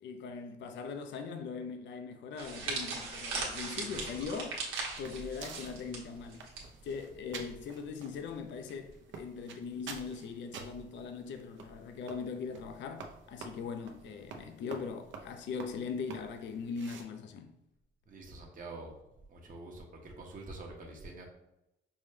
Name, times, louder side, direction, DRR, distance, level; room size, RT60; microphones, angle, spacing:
voice 1, 0.0-17.5, left 5 dB, 70° left, 0.5 m, -40 dB
sound 1, 2.4-6.6 6.9-7.1 8.0-8.3, right 3 dB, 90° right, 1.1 m, -39 dB
sound 2, 3.9-17.0, right 5 dB, 70° right, 0.6 m, -50 dB
voice 2, 18.1-18.9 19.3-21.3, right 2 dB, 45° right, 0.9 m, -46 dB
5.4 x 2.1 x 3.2 m
cardioid pair, 90°, 20 cm